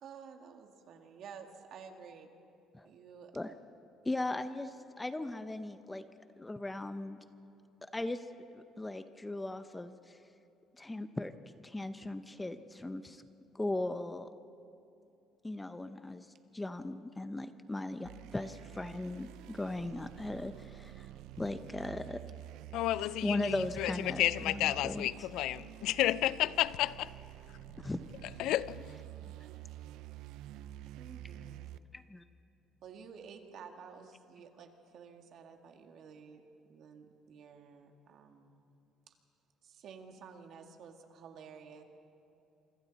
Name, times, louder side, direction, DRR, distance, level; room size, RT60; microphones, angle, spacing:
voice 1, 0.0-2.3 2.8-3.3 28.4-28.5 30.9-31.8 32.8-38.6 39.1-39.2 39.6-41.8, right 6 dB, 50° right, 1.9 m, -52 dB
voice 2, 4.1-6.1 6.4-7.2 7.8-8.2 8.5-10.2 10.8-11.3 11.6-13.2 13.5-14.3 15.4-16.3 16.5-21.1 21.4-22.2 23.2-25.1 27.7-28.0 31.9-32.2, left 2 dB, 10° left, 0.6 m, -38 dB
sound 1, 18.0-31.8, right 13 dB, 85° right, 0.5 m, -48 dB
voice 3, 22.7-27.1 28.4-28.7, left 14 dB, 70° left, 0.4 m, -31 dB
27.0 x 25.5 x 4.1 m
cardioid pair, 160°, 0 cm